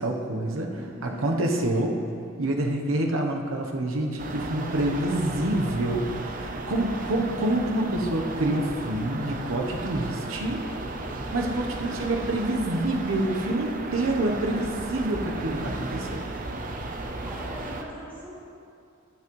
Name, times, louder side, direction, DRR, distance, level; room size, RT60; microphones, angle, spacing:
voice 1, 0.0-2.0 2.4-10.6 11.3-16.2, right 1 dB, 90° right, 2 dB, 0.9 m, -27 dB
voice 2, 0.8-1.3 11.5-11.9 17.2-18.4, equal, 10° right, -9 dB, 2.4 m, -42 dB
sound 1, 4.2-17.8, right 2 dB, 40° right, 0.7 m, -35 dB
15.5 x 5.9 x 3.1 m, 2.4 s
head